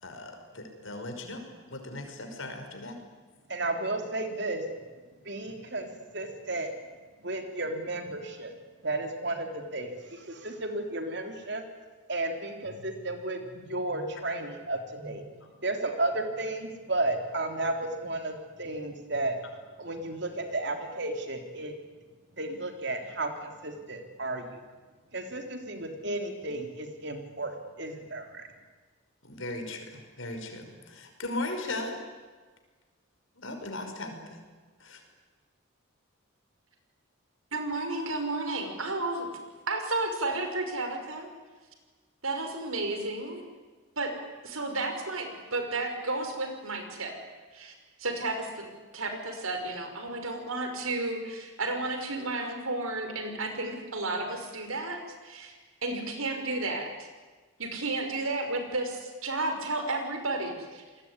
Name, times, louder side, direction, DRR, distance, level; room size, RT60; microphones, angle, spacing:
voice 1, 0.0-3.0 29.2-32.0 33.4-34.4 34.8-35.0, left 2 dB, 65° left, 5 dB, 5.6 m, -38 dB
voice 2, 3.5-4.7 5.2-6.7 7.2-8.5 8.8-11.6 12.1-15.3 15.6-19.4 19.8-21.7 22.3-24.6 25.1-28.5, right 2 dB, 55° right, 5 dB, 3.7 m, -33 dB
voice 3, 37.5-39.3 39.7-41.3 42.2-43.4 44.0-44.1 44.4-47.2 47.5-47.7 48.0-48.7 48.9-57.1 57.6-60.8, right 2 dB, 85° right, 6 dB, 5.6 m, -32 dB
28.5 x 21.0 x 9.8 m, 1.4 s
head